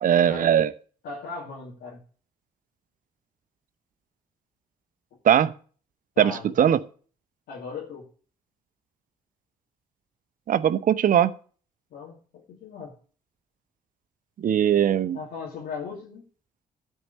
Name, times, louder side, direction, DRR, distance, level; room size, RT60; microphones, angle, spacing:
voice 1, 0.0-0.7 5.2-5.5 6.2-6.8 10.5-11.3 14.4-15.2, right 9 dB, 55° right, 15 dB, 0.8 m, -20 dB
voice 2, 1.0-2.0 6.2-6.6 7.5-8.1 11.9-13.0 15.1-16.2, left 5 dB, 70° left, -5 dB, 2.5 m, -38 dB
12.5 x 4.7 x 8.5 m, 0.42 s
hypercardioid pair, 50°, 17 cm